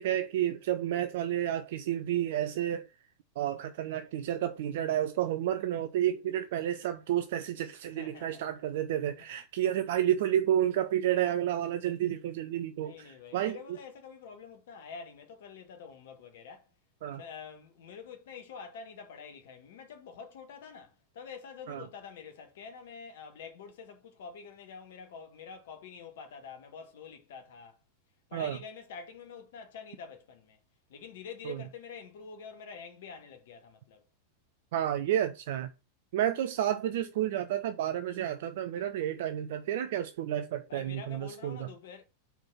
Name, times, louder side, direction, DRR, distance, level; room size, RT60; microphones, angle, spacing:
voice 1, 0.0-2.9 3.4-13.6 17.0-17.2 21.7-21.8 28.3-28.6 31.5-31.6 34.7-35.7 36.1-41.7, right 11 dB, 55° right, 0.5 m, -30 dB
voice 2, 7.9-8.4 12.8-16.7 17.2-27.8 28.3-30.6 30.9-34.0 40.7-42.0, left 6 dB, 55° left, 1.5 m, -47 dB
4.6 x 4.3 x 5.7 m
figure-of-eight pair, 90°, 0 cm